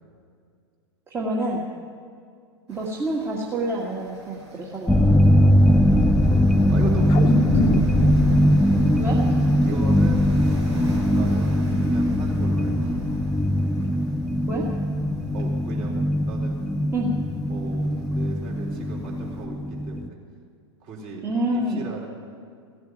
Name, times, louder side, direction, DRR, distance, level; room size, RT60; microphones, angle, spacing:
voice 1, 1.1-1.6 2.7-4.9 9.0-9.4 14.5-14.6 16.9-17.1 21.2-21.9, right 1 dB, 15° right, -3 dB, 1.7 m, -27 dB
sound 1, 2.7-19.4, equal, 80° right, 3.1 m, -44 dB
sound 2, 4.9-20.1, equal, 5° left, 0.4 m, -20 dB
voice 2, 5.6-6.2 6.7-7.5 9.6-10.3 11.1-13.0 15.3-16.6 17.5-20.2 20.8-22.1, right 3 dB, 40° right, -2 dB, 3.8 m, -38 dB
sound 3, 7.1-11.6 12.0-12.1, left 2 dB, 30° left, 1.0 m, -28 dB
16.0 x 7.9 x 9.2 m, 2.2 s
figure-of-eight pair, 100°, 15 cm